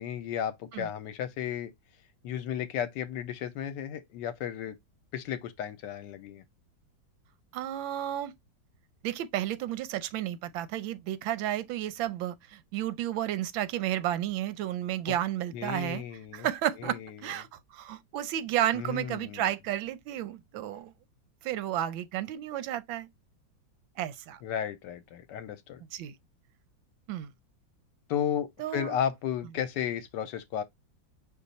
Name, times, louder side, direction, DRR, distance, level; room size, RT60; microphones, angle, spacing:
voice 1, 0.0-1.7 2.2-4.8 5.1-6.4 15.5-16.5 16.8-17.2 18.7-19.4 24.4-25.8 28.1-30.6, left 9 dB, 75° left, 1.1 m, -34 dB
voice 2, 7.5-8.3 9.0-16.0 16.3-20.9 21.4-23.1 24.0-24.4 25.9-26.1 27.1-27.3 28.6-29.0, right 12 dB, 90° right, 1.4 m, -32 dB
5.3 x 2.3 x 4.0 m
omnidirectional pair, 2.1 m